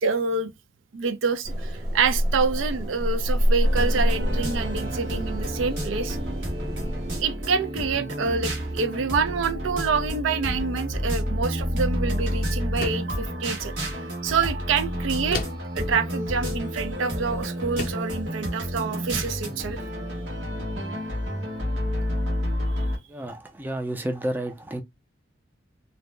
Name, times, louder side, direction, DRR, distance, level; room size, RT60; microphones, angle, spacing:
voice 1, 0.0-0.5 0.9-6.2 7.2-13.7 14.2-15.4 15.8-19.8, right 5 dB, 90° right, 0.4 m, -27 dB
sound 1, 1.4-7.2, equal, 50° right, 1.0 m, -27 dB
sound 2, 3.6-23.0, equal, 70° right, 1.2 m, -29 dB
sound 3, 12.8-13.2 15.3-15.8 17.1-17.2 17.8-18.1, left 3 dB, 50° left, 0.5 m, -33 dB
voice 2, 23.1-24.8, right 1 dB, 10° right, 0.3 m, -31 dB
2.7 x 2.0 x 3.1 m
head